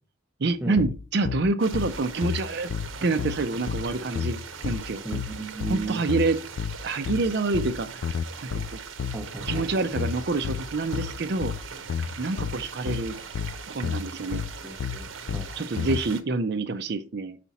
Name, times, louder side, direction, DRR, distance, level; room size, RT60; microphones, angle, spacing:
voice 1, 0.4-2.7 3.0-5.0 5.6-6.4 6.8-8.0 8.4-8.8 9.5-11.5 12.2-13.1 13.7-14.4 15.6-17.4, right 3 dB, 55° right, 0.6 m, -27 dB
sound 1, 0.8-16.0, left 7 dB, 65° left, 0.3 m, -31 dB
sound 2, 1.6-16.2, right 5 dB, 80° right, 0.9 m, -40 dB
voice 2, 5.0-6.0 9.1-9.9 14.6-15.7, right 3 dB, 10° right, 0.8 m, -35 dB
7.1 x 5.0 x 4.1 m
head